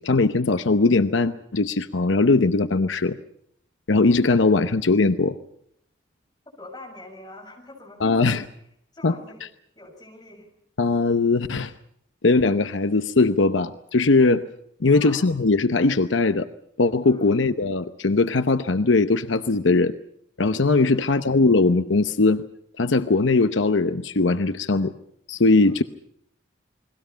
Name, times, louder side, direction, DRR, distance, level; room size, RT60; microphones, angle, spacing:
voice 1, 0.0-3.2 3.9-5.4 8.0-8.4 9.0-9.1 10.8-11.7 12.2-14.4 14.8-16.5 16.8-19.9 20.4-22.5 22.8-24.9 25.3-25.8, left 3 dB, 80° left, 11 dB, 0.8 m, -20 dB
voice 2, 6.6-8.4 8.9-9.4 9.8-10.5 14.9-15.3 17.0-17.4 20.8-21.2 25.6-25.8, left 2 dB, 20° left, 1 dB, 7.1 m, -44 dB
29.5 x 21.5 x 5.7 m, 0.71 s
head